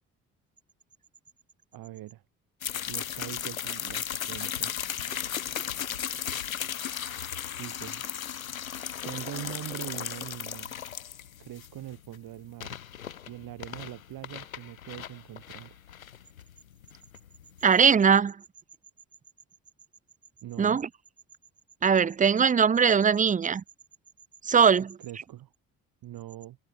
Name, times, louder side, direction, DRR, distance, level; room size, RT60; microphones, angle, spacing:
voice 1, 1.7-2.2 2.9-4.7 7.6-8.0 9.0-10.7 11.4-12.8 13.3-15.8 20.4-20.8 25.0-25.5 26.0-26.6, right 14 dB, 60° right, 8.0 m, -42 dB
sound 1, 2.6-18.0, left 9 dB, 85° left, 1.7 m, -36 dB
voice 2, 17.6-18.4 20.6-20.9 21.8-23.6 24.4-24.9, right 6 dB, 20° right, 0.7 m, -21 dB
figure-of-eight pair, 45°, 40 cm